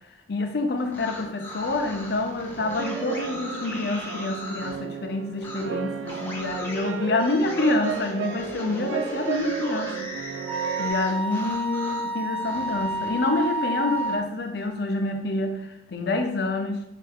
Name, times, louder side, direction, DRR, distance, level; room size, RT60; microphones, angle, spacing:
voice 1, 0.3-10.2 10.8-16.8, left 2 dB, 65° left, 4 dB, 0.6 m, -27 dB
sound 1, 0.8-4.8 5.4-5.6 6.0-12.1 12.4-14.1, left 1 dB, 10° left, 0.7 m, -39 dB
sound 2, 2.6-10.9, right 7 dB, 90° right, 0.4 m, -34 dB
Wind instrument woodwind instrument, 10.5-14.3, right 1 dB, 30° right, 1.0 m, -29 dB
5.7 x 2.5 x 3.5 m, 0.81 s
head